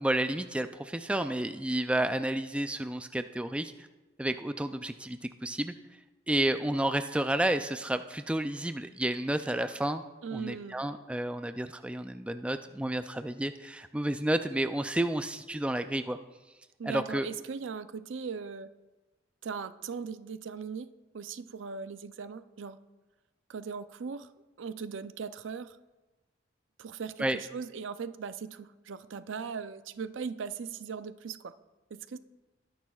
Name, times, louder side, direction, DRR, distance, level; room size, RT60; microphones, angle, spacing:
voice 1, 0.0-3.9 4.2-5.7 6.3-10.0 10.3-16.2 16.8-17.3 27.2-27.4, right 1 dB, 5° right, 9 dB, 0.3 m, -31 dB
voice 2, 10.2-11.0 16.8-18.7 19.4-20.9 21.1-22.8 23.5-24.3 24.6-25.8 26.8-31.5 31.9-32.2, right 5 dB, 90° right, 12 dB, 0.5 m, -39 dB
21.0 x 10.5 x 2.4 m, 1.1 s
head